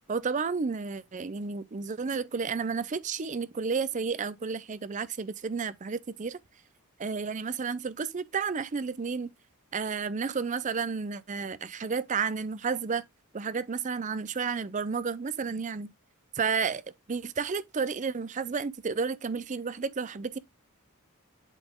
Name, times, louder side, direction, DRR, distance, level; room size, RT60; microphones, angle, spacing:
voice 1, 0.1-6.4 7.0-9.3 9.7-13.0 13.3-15.9 16.4-16.8 17.1-20.4, right 5 dB, 35° right, 0.5 m, -31 dB
8.1 x 4.1 x 3.5 m
head